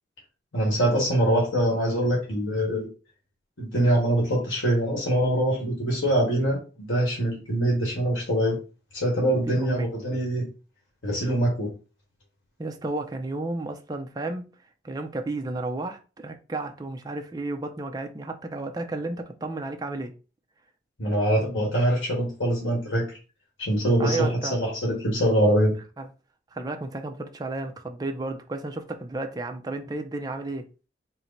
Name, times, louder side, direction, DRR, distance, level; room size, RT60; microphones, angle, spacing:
voice 1, 0.5-2.9 3.6-8.6 8.9-10.5 11.0-11.7 21.0-23.1 23.6-25.7, right 1 dB, 90° left, 1.4 m, -24 dB
voice 2, 9.5-9.9 12.6-14.5 14.8-20.1 24.0-24.6 26.0-26.1 26.5-30.7, right 2 dB, 20° right, 0.4 m, -32 dB
4.4 x 2.1 x 3.9 m
head